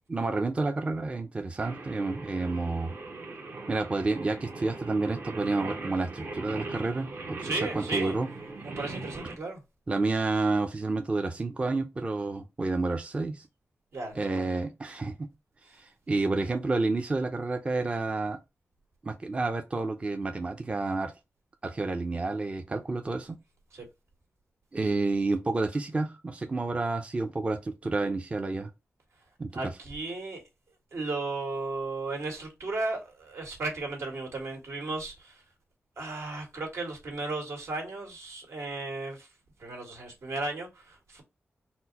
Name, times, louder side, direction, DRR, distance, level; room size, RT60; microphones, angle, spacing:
voice 1, 0.1-3.0 3.7-8.3 9.9-13.5 14.1-15.3 15.6-18.4 19.0-21.1 21.6-23.4 24.7-28.7 29.4-29.8, right 3 dB, 25° right, 0.4 m, -30 dB
Singing, 1.6-9.3, right 3 dB, 55° right, 0.8 m, -40 dB
voice 2, 7.4-8.2 8.6-9.6 13.9-14.5 23.7-23.8 29.5-30.4 30.9-35.4 36.0-39.3 39.6-41.2, right 3 dB, 80° right, 1.8 m, -35 dB
4.3 x 2.1 x 3.9 m
wide cardioid pair, 135°, 5 cm